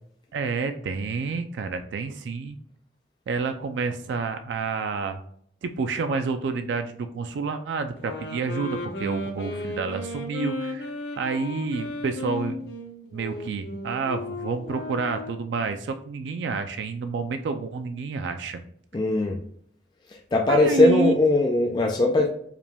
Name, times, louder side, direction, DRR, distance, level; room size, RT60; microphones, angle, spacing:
voice 1, 0.3-2.6 3.3-5.2 5.6-10.9 11.2-12.6 13.1-18.6 20.5-21.2, right 4 dB, 85° right, 7 dB, 0.3 m, -29 dB
sound 1, 8.0-15.5, left 2 dB, 70° left, 0.7 m, -35 dB
voice 2, 18.9-19.4 20.3-22.3, left 2 dB, 25° left, 1 dB, 0.3 m, -20 dB
4.9 x 2.2 x 3.3 m, 0.64 s
head